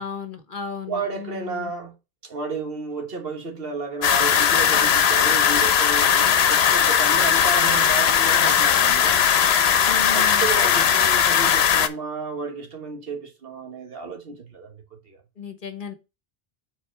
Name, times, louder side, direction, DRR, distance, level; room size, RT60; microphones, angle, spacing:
voice 1, 0.0-1.7 9.8-10.5 15.4-15.9, left 5 dB, 55° left, 1.1 m, -34 dB
voice 2, 0.9-1.9 2.2-9.2 10.1-15.2, right 4 dB, 65° right, 1.4 m, -32 dB
sound 1, 4.0-11.9, left 8 dB, 90° left, 0.9 m, -18 dB
5.0 x 4.1 x 5.6 m
omnidirectional pair, 1.0 m